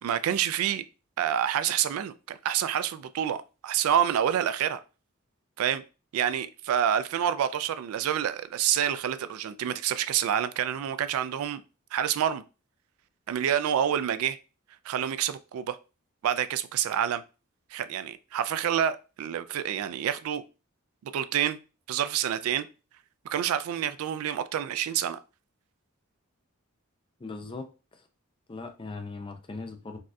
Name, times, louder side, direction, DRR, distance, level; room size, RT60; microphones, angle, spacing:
voice 1, 0.0-0.8 1.2-4.8 5.6-5.8 6.1-11.6 11.9-12.4 13.3-14.4 14.9-15.8 16.2-17.2 17.7-20.4 21.0-21.6 21.9-22.7 23.3-25.2, right 9 dB, 80° right, 0.3 m, -28 dB
voice 2, 27.2-27.7 28.5-30.0, left 3 dB, 25° left, 0.4 m, -39 dB
4.0 x 2.3 x 2.5 m
head